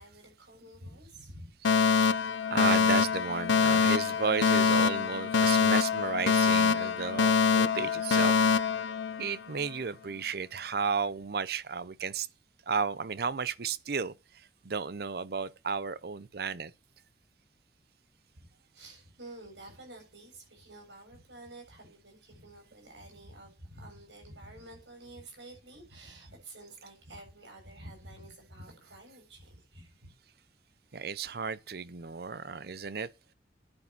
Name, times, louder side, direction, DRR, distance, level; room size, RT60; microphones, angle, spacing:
voice 1, 0.0-1.5 18.3-18.5 18.7-30.1, right 1 dB, 80° right, 7.4 m, -50 dB
Alarm, 1.6-9.7, left 6 dB, 90° left, 0.6 m, -25 dB
voice 2, 1.7-2.1 2.5-8.3 9.2-12.3 12.7-16.7 30.9-33.1, right 5 dB, 55° right, 0.6 m, -33 dB
9.8 x 9.6 x 5.9 m
head